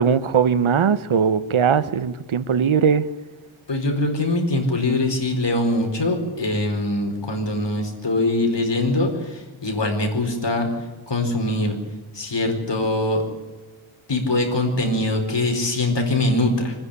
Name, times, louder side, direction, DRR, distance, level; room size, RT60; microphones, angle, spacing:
voice 1, 0.0-3.1, right 7 dB, 75° right, 14 dB, 1.0 m, -19 dB
voice 2, 3.7-10.7 11.1-11.8 12.1-13.2 14.1-16.7, left 2 dB, 60° left, 4 dB, 4.6 m, -22 dB
25.5 x 10.5 x 9.9 m, 1.2 s
wide cardioid pair, 75°, 48 cm